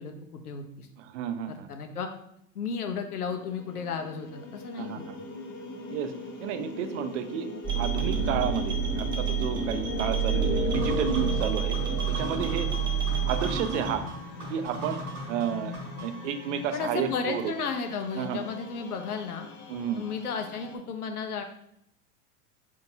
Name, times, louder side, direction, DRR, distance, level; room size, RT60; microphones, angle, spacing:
voice 1, 0.0-0.9 1.7-2.1 2.5-5.0 11.2-11.5 12.5-12.6 16.7-19.5 20.0-21.4, left 5 dB, 90° left, 5 dB, 0.7 m, -34 dB
voice 2, 1.0-1.7 4.8-5.2 5.9-6.1 6.4-11.8 12.1-12.7 13.2-14.1 14.5-15.0 15.3-15.7 16.0-17.5 18.1-18.4 19.7-20.0, right 9 dB, 55° right, 9 dB, 0.5 m, -31 dB
sound 1, 3.0-20.8, left 3 dB, 25° left, 0.7 m, -42 dB
sound 2, 7.6-13.9, right 5 dB, 10° right, 0.7 m, -28 dB
sound 3, 10.7-16.3, equal, 75° right, 1.3 m, -40 dB
4.3 x 2.8 x 2.7 m, 0.73 s
hypercardioid pair, 100°, 44 cm